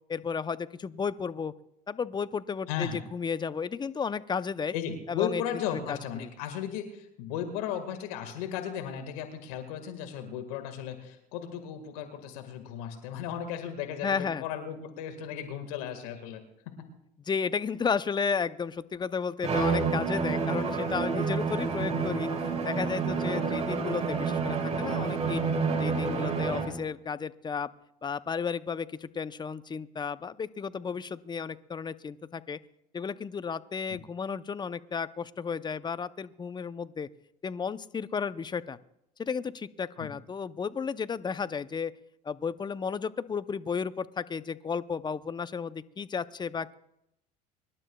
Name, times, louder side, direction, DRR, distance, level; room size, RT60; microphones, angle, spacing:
voice 1, 0.1-1.5 1.9-4.7 5.1-5.4 5.9-6.3 14.0-14.4 17.3-25.4 25.8-27.7 28.0-32.6 32.9-37.1 37.4-38.8 39.2-41.9 42.2-46.8, left 6 dB, 25° left, 14 dB, 0.7 m, -33 dB
voice 2, 2.7-3.0 4.7-16.4 21.8-21.9 33.9-34.0 40.0-40.1, left 9 dB, 80° left, 6 dB, 1.8 m, -35 dB
Bowed string instrument, 19.4-26.8, right 4 dB, 35° right, 4.1 m, -29 dB
25.0 x 12.0 x 2.3 m, 0.79 s
hypercardioid pair, 75°, 19 cm